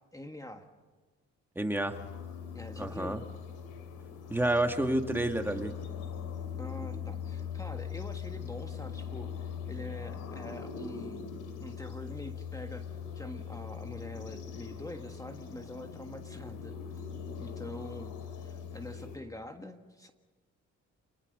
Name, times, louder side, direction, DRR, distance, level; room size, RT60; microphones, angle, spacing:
voice 1, 0.1-0.6 2.5-3.2 6.6-11.2 11.6-12.8 13.1-16.7 17.4-20.1, left 1 dB, 10° left, 5 dB, 1.7 m, -45 dB
voice 2, 1.6-2.0 2.8-3.2 4.3-5.7, right 1 dB, 5° right, 5 dB, 2.1 m, -29 dB
sound 1, 1.9-19.2, left 7 dB, 90° left, 3.0 m, -41 dB
28.0 x 20.0 x 6.8 m, 1.3 s
cardioid pair, 90°, 30 cm